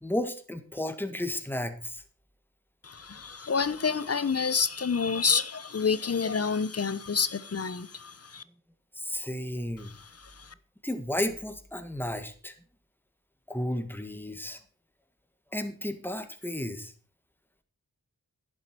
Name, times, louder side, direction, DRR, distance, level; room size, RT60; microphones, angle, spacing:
voice 1, 0.0-2.0 9.0-9.9 10.8-12.5 13.5-14.6 15.5-16.9, left 1 dB, 5° left, 1.7 m, -33 dB
voice 2, 2.8-8.4 9.8-10.5, left 5 dB, 45° left, 0.9 m, -29 dB
11.0 x 7.7 x 6.1 m
cardioid pair, 60°, 35 cm